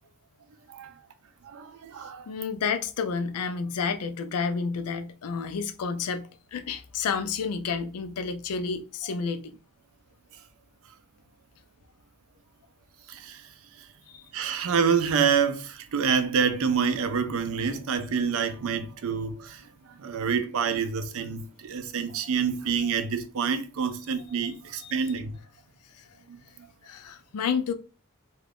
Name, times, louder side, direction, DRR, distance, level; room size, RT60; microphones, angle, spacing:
voice 1, 1.4-2.3 13.1-13.4 14.3-19.6 20.0-25.3 26.3-26.4, right 6 dB, 65° right, 0.4 m, -27 dB
voice 2, 2.3-9.6 14.1-14.2 24.8-24.9 25.9-26.1 26.8-27.7, left 5 dB, 80° left, 0.4 m, -30 dB
2.4 x 2.3 x 3.4 m
head